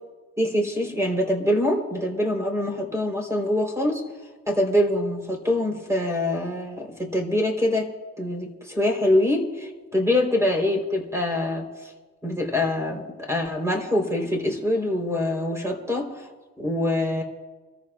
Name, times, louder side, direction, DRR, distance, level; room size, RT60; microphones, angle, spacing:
voice 1, 0.4-4.0 4.5-7.9 8.2-11.7 12.2-16.3 16.6-17.2, left 1 dB, 10° right, 2 dB, 3.9 m, -24 dB
27.0 x 14.0 x 2.4 m, 1.3 s
cardioid pair, 90°, 30 cm